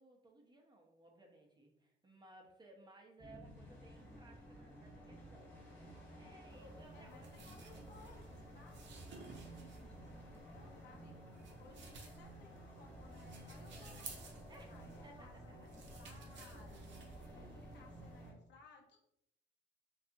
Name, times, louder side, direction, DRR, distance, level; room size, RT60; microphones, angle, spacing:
voice 1, 0.0-7.6 11.6-12.0 14.5-14.8 15.0-15.3 17.3-18.0, right 2 dB, 20° right, 1 dB, 0.6 m, -61 dB
sound 1, 3.2-18.3, right 1 dB, 10° left, 0.9 m, -54 dB
sound 2, 6.5-18.3, right 3 dB, 65° right, 0.6 m, -57 dB
voice 2, 6.9-14.1 14.6-16.9 17.3-19.0, left 4 dB, 65° left, 2 dB, 0.6 m, -62 dB
2.6 x 2.3 x 2.5 m, 0.76 s
cardioid pair, 90°, 20 cm